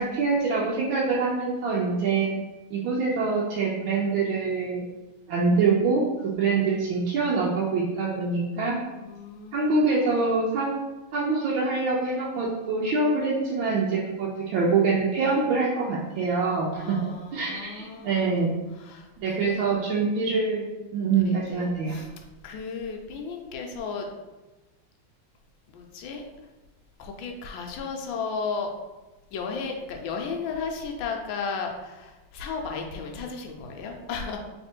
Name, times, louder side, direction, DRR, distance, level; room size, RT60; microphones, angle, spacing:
voice 1, 0.0-2.3 2.7-4.8 5.3-8.8 9.5-10.7 11.1-17.0 17.3-18.5 19.2-22.0, right 4 dB, 80° right, -5 dB, 1.4 m, -25 dB
voice 2, 9.0-10.3 16.7-18.4 18.7-19.7 21.1-22.2 22.4-24.1 25.7-26.2 27.0-28.7 29.3-34.4, left 5 dB, 80° left, 3 dB, 1.3 m, -35 dB
3.4 x 3.2 x 4.4 m, 1.1 s
omnidirectional pair, 2.2 m